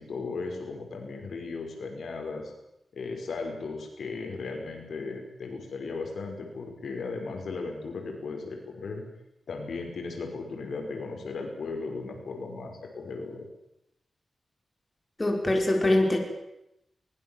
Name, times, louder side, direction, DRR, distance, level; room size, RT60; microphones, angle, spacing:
voice 1, 0.0-2.5 2.9-9.0 9.5-13.5, left 4 dB, 80° left, 3 dB, 5.8 m, -36 dB
voice 2, 15.2-16.2, left 1 dB, 25° left, 2 dB, 5.5 m, -23 dB
23.5 x 21.0 x 7.4 m, 0.85 s
wide cardioid pair, 95°, 0 cm